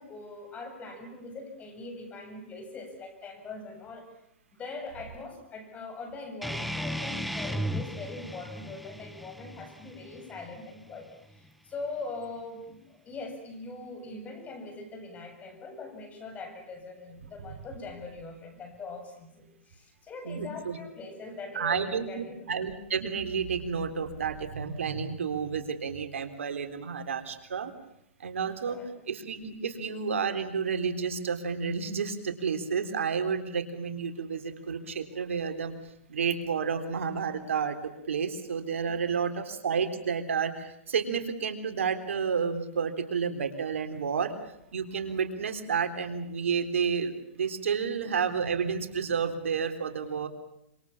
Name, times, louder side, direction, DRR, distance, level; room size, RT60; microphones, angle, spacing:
voice 1, 0.0-4.0 4.5-22.5 28.4-28.9, left 3 dB, 20° left, 6 dB, 7.9 m, -42 dB
sound 1, 6.4-11.5, equal, ahead, 1.6 m, -36 dB
voice 2, 20.3-20.8 21.5-27.7 28.2-28.8 29.1-35.7 36.1-44.3 44.7-50.3, right 6 dB, 90° right, 8 dB, 3.7 m, -31 dB
27.0 x 26.0 x 7.3 m, 0.80 s
hypercardioid pair, 135°, 7 cm